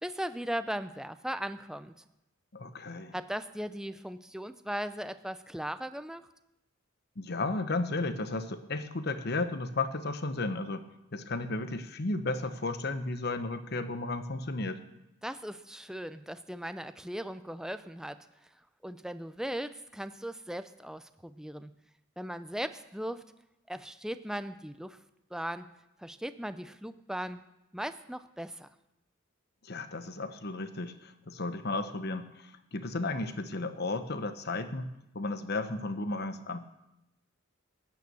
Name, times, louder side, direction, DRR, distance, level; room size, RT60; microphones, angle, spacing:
voice 1, 0.0-2.0 3.1-6.2 15.2-18.2 18.8-21.7 22.2-23.3 23.7-25.0 25.3-25.7 26.0-27.4 27.7-28.7, equal, 5° right, 11 dB, 0.5 m, -38 dB
voice 2, 2.5-3.1 7.2-14.8 29.6-36.6, left 2 dB, 55° left, 10 dB, 1.0 m, -34 dB
15.5 x 9.4 x 6.9 m, 0.90 s
head